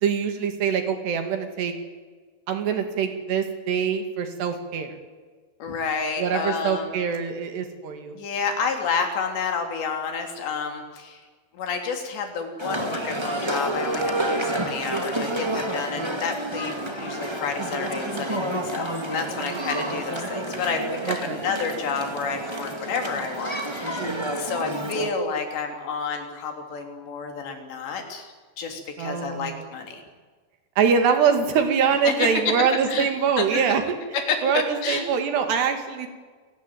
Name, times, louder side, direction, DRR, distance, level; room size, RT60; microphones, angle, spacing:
voice 1, 0.0-1.7 2.5-5.0 6.2-8.2 14.5-14.6 19.4-19.7 21.1-21.4 24.0-24.3 29.0-29.7 30.8-34.0 34.4-36.1, right 6 dB, 75° right, 7 dB, 4.5 m, -24 dB
voice 2, 5.6-6.9 8.1-11.2 11.5-30.0 32.0-32.3 32.9-33.1 33.4-33.6 34.3-35.0, left 5 dB, 85° left, 4 dB, 5.6 m, -30 dB
sound 1, 12.6-25.1, right 1 dB, 10° right, 1.3 m, -29 dB
27.5 x 18.5 x 9.3 m, 1.5 s
omnidirectional pair, 4.9 m